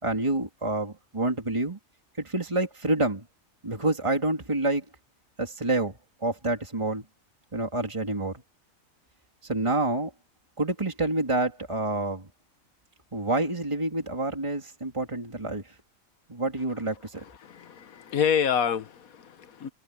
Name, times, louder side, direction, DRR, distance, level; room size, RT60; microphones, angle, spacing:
voice 1, 0.0-1.8 2.2-3.2 3.6-4.8 5.4-7.1 7.5-8.3 9.4-10.1 10.6-12.3 13.1-15.6 16.3-17.2, right 2 dB, 20° right, 2.6 m, -28 dB
voice 2, 17.2-19.7, left 7 dB, 90° left, 1.5 m, -28 dB
omnidirectional pair, 1.4 m